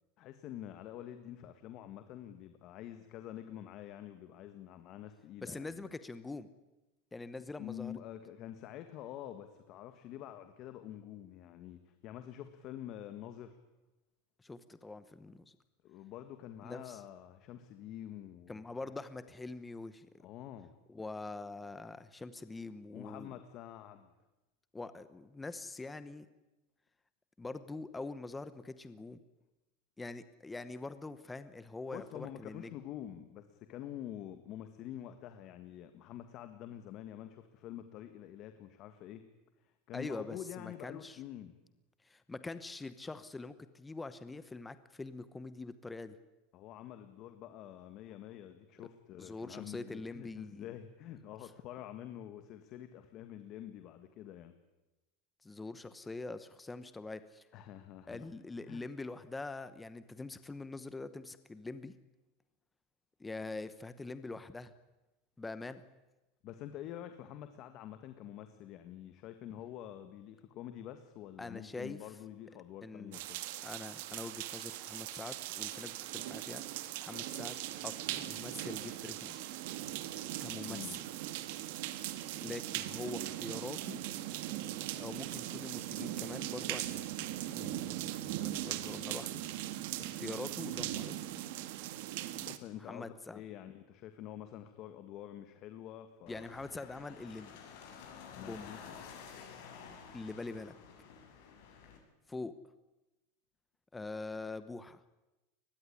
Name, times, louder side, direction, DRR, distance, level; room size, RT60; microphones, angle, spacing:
voice 1, 0.2-5.9 7.6-13.6 15.8-18.9 20.2-20.7 22.9-24.1 31.9-39.2 39.6-41.5 46.5-54.5 57.5-58.3 58.7-58.8 66.4-73.4 80.7-81.0 92.3-96.5 98.3-98.8, left 11 dB, 40° left, 9 dB, 1.6 m, -47 dB
voice 2, 5.4-6.5 7.1-7.9 14.4-15.6 16.6-17.0 18.5-20.1 20.9-23.3 24.7-26.3 27.4-29.2 30.0-32.7 39.9-41.2 42.0-46.2 49.2-50.7 55.4-57.5 58.1-61.9 63.2-64.7 65.4-65.8 71.4-72.0 72.8-73.2 73.6-76.6 77.0-77.6 77.8-79.5 80.4-81.0 82.4-84.0 85.0-87.1 87.5-89.4 90.0-91.2 92.9-93.4 96.3-97.5 98.4-98.7 100.1-100.7 102.3-102.5 103.9-105.0, left 3 dB, 10° left, 13 dB, 1.0 m, -44 dB
sound 1, 73.1-92.6, right 14 dB, 65° right, 1.8 m, -40 dB
sound 2, 96.3-102.0, left 6 dB, 65° left, 6.9 m, -51 dB
22.5 x 20.5 x 10.0 m, 1.0 s
supercardioid pair, 165°, 0 cm